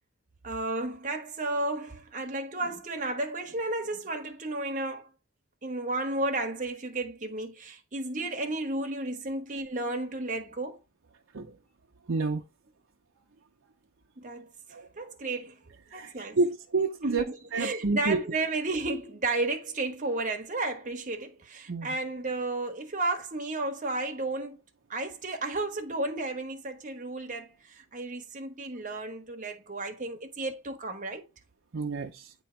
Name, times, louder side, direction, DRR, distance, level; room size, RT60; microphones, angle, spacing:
voice 1, 0.4-5.1 5.6-10.8 14.2-14.5 15.0-15.6 15.9-16.4 17.0-24.6 24.9-31.2, right 2 dB, 40° right, 1.2 m, -33 dB
voice 2, 12.1-12.4 14.7-14.9 15.9-17.2 17.5-18.2 21.7-21.9 31.7-32.3, right 3 dB, 65° right, 0.7 m, -29 dB
8.6 x 3.1 x 4.4 m
head